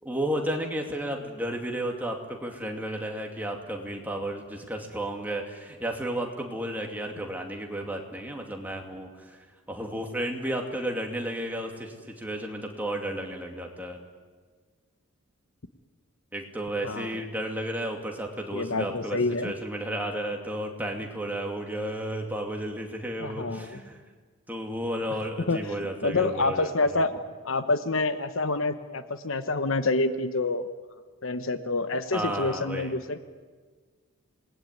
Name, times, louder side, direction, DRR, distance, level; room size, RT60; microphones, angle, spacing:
voice 1, 0.0-14.0 16.3-24.0 24.5-27.0 32.1-33.0, right 1 dB, 10° right, 1 dB, 2.6 m, -33 dB
voice 2, 18.5-19.5 23.2-23.8 25.5-25.6 26.0-27.1 27.4-30.7 31.2-33.2, left 3 dB, 65° left, 10 dB, 1.1 m, -27 dB
27.5 x 20.0 x 9.5 m, 1.5 s
head